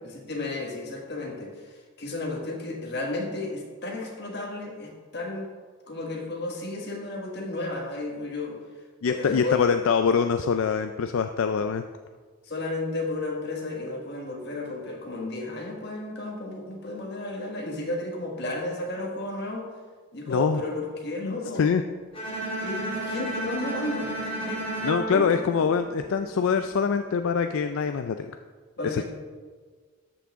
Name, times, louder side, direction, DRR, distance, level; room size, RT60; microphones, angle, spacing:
voice 1, 0.3-1.5 2.0-5.5 5.9-8.6 9.1-9.7 12.4-19.7 20.1-21.7 22.6-24.1 24.4-24.6 25.1-25.7 28.8-29.0, left 2 dB, 50° left, 0 dB, 1.6 m, -33 dB
voice 2, 9.0-11.8 20.3-20.6 21.2-21.8 24.8-28.3 28.8-29.0, left 6 dB, 75° left, 8 dB, 0.4 m, -24 dB
Bowed string instrument, 22.1-26.3, right 2 dB, 25° left, 2.0 m, -32 dB
13.0 x 6.1 x 3.6 m, 1.5 s
head